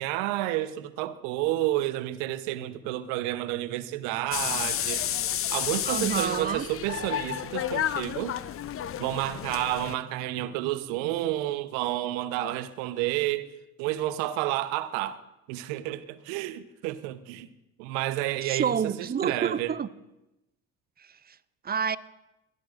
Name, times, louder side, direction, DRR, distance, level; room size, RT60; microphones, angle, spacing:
voice 1, 0.0-5.2 5.5-8.4 9.0-13.5 13.8-15.2 15.5-17.5 17.8-19.7, right 14 dB, 70° right, 1.0 m, -30 dB
sound 1, 4.3-9.9, left 11 dB, 35° left, 0.6 m, -31 dB
voice 2, 5.9-6.6 18.4-19.9 21.0-21.4 21.6-22.0, right 7 dB, 25° right, 0.5 m, -29 dB
22.0 x 14.0 x 2.5 m
hypercardioid pair, 60°, 42 cm